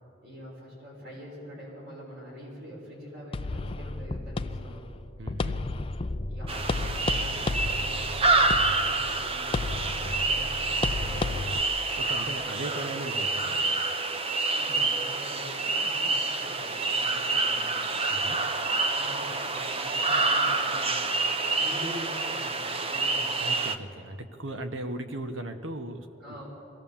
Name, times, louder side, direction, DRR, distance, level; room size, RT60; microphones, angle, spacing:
voice 1, 0.2-5.0 6.3-9.7 10.0-11.6 14.5-17.9 18.9-21.1 21.6-23.3 26.2-26.4, equal, 55° right, -4 dB, 6.4 m, -44 dB
sound 1, 3.3-11.6, left 3 dB, 25° left, 0.4 m, -32 dB
voice 2, 5.2-5.7 10.0-10.1 12.0-13.8 18.1-18.4 23.4-26.1, right 1 dB, 75° right, 7 dB, 1.3 m, -37 dB
sound 2, 6.5-23.8, right 3 dB, 30° right, 0.7 m, -28 dB
23.0 x 17.0 x 7.3 m, 2.8 s
head